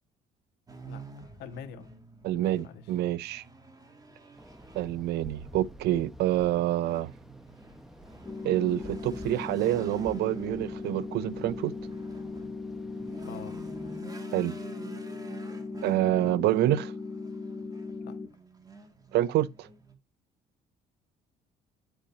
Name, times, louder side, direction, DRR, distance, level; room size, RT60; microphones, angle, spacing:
sound 1, 0.7-19.9, right 3 dB, 20° right, 2.4 m, -50 dB
voice 1, 0.8-1.9 2.3-3.0 13.2-13.6 18.0-18.2, left 8 dB, 75° left, 1.8 m, -46 dB
voice 2, 2.2-3.4 4.7-7.1 8.4-11.7 14.3-14.5 15.8-16.9 19.1-19.5, right 14 dB, 75° right, 0.7 m, -27 dB
sound 2, 4.3-14.0, equal, ahead, 1.2 m, -50 dB
sound 3, 8.2-18.3, left 3 dB, 15° left, 5.5 m, -38 dB
10.0 x 7.9 x 2.9 m
cardioid pair, 110°, 17 cm